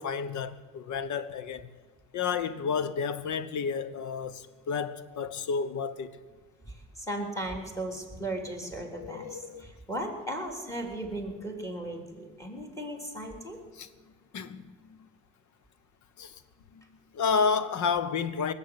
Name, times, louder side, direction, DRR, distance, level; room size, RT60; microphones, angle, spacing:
voice 1, 0.0-1.7 2.1-6.1 8.9-9.7 13.8-13.9 14.3-15.0 16.2-16.4 17.1-18.5, left 6 dB, 75° left, 1.0 m, -31 dB
voice 2, 6.6-13.6, right 1 dB, 10° left, 3.3 m, -36 dB
19.5 x 7.5 x 9.8 m
cardioid pair, 90°, 30 cm